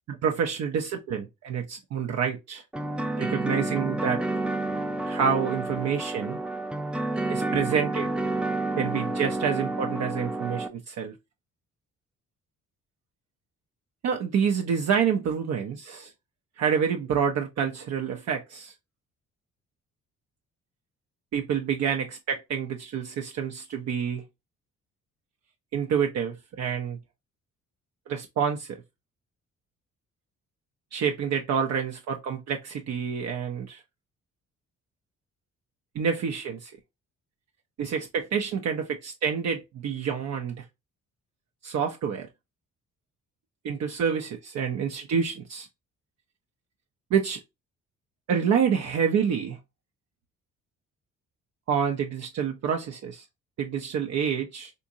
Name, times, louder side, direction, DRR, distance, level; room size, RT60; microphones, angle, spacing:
voice 1, 0.1-2.6 3.2-4.2 5.0-6.4 7.3-8.1 8.8-11.1 14.0-16.1 16.6-18.7 21.3-24.2 25.7-27.0 28.1-28.8 30.9-33.8 35.9-36.7 37.8-40.7 41.6-42.3 43.6-45.7 47.1-47.4 48.3-49.6 51.7-53.2 53.6-54.7, right 7 dB, 60° right, 0.6 m, -28 dB
sound 1, 2.7-10.7, right 2 dB, 5° right, 0.3 m, -30 dB
3.6 x 2.6 x 2.7 m
cardioid pair, 90°, 30 cm